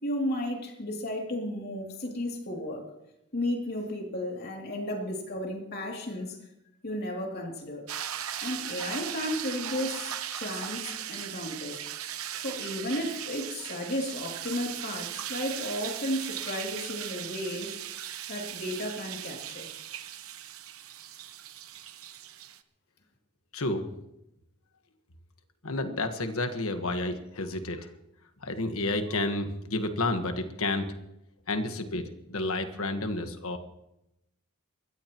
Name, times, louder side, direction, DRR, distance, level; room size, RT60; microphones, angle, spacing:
voice 1, 0.0-2.8 3.3-6.4 6.8-7.8 8.4-11.8 12.4-17.7 18.3-19.7, left 1 dB, 45° left, 0 dB, 2.8 m, -33 dB
sound 1, 7.9-22.6, right 10 dB, 75° right, 0.9 m, -38 dB
voice 2, 23.5-23.9 25.6-27.9 28.4-30.9 31.5-33.6, left 2 dB, 70° left, 7 dB, 1.5 m, -30 dB
22.5 x 16.5 x 3.0 m, 0.86 s
head